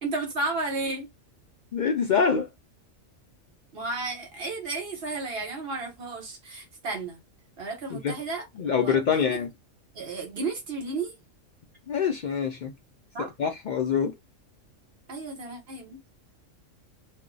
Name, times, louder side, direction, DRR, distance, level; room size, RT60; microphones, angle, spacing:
voice 1, 0.0-1.1 3.7-7.2 7.6-9.4 9.9-11.1 13.1-13.3 15.1-16.0, right 3 dB, 55° right, 1.2 m, -33 dB
voice 2, 1.7-2.5 7.9-8.2 8.6-9.5 11.9-12.7 13.2-14.1, left 6 dB, 70° left, 0.4 m, -25 dB
2.6 x 2.1 x 3.7 m
omnidirectional pair, 1.3 m